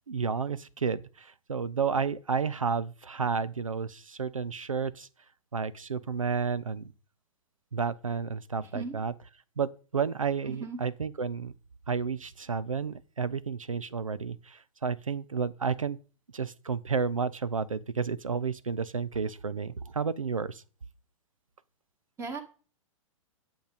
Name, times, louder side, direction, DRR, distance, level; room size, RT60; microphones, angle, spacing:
voice 1, 0.1-5.1 5.5-6.8 7.7-9.1 9.6-11.5 11.9-16.0 16.3-20.6, right 5 dB, 80° right, 0.7 m, -31 dB
voice 2, 8.6-9.0 10.5-10.8 22.2-22.4, right 4 dB, 15° right, 1.7 m, -37 dB
10.5 x 7.4 x 5.0 m
figure-of-eight pair, 110°, 17 cm